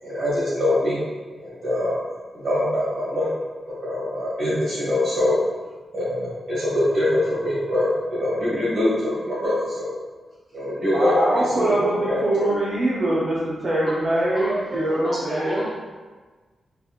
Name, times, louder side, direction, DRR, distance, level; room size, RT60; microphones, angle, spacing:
voice 1, 0.0-1.0 1.4-2.0 2.3-3.4 3.6-5.4 5.9-9.9 10.5-12.2, left 1 dB, 55° right, -8 dB, 1.3 m, -24 dB
voice 2, 10.9-15.6, right 1 dB, 35° right, -9 dB, 0.6 m, -23 dB
voice 3, 13.9-15.7, equal, 10° left, -9 dB, 1.0 m, -32 dB
3.9 x 2.9 x 2.3 m, 1.4 s
wide cardioid pair, 170°, 0 cm